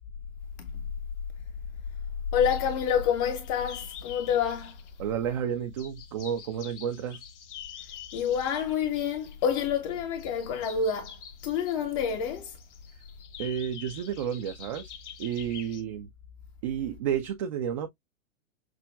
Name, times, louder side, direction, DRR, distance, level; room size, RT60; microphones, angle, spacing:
voice 1, 2.3-4.8 8.1-11.2 11.4-12.6, left 7 dB, 25° left, 0.5 m, -28 dB
sound 1, 2.4-15.8, left 8 dB, 55° left, 1.1 m, -47 dB
voice 2, 5.0-7.2 13.4-14.9 15.2-16.1 16.6-17.9, right 9 dB, 25° right, 0.3 m, -31 dB
6.0 x 2.1 x 2.2 m
hypercardioid pair, 115°, 41 cm